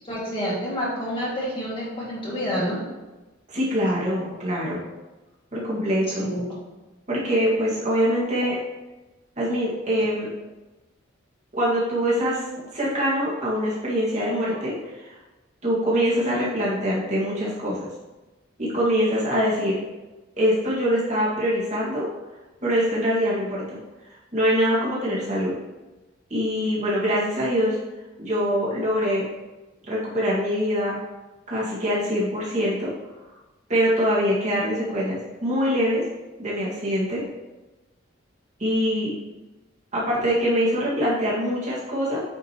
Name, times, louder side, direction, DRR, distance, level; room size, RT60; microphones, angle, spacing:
voice 1, 0.1-2.8 6.2-6.5, equal, 25° left, -7 dB, 2.2 m, -28 dB
voice 2, 3.5-4.8 5.5-6.2 7.1-8.6 9.4-10.3 11.5-12.4 12.7-15.1 15.6-17.9 18.6-19.8 20.4-22.1 22.6-23.8 24.3-25.5 26.3-27.8 28.2-29.2 29.9-31.0 31.5-32.9 33.7-36.0 36.4-37.2 38.6-39.1 39.9-42.2, equal, 35° right, -7 dB, 2.0 m, -24 dB
8.9 x 5.0 x 3.0 m, 1.1 s
head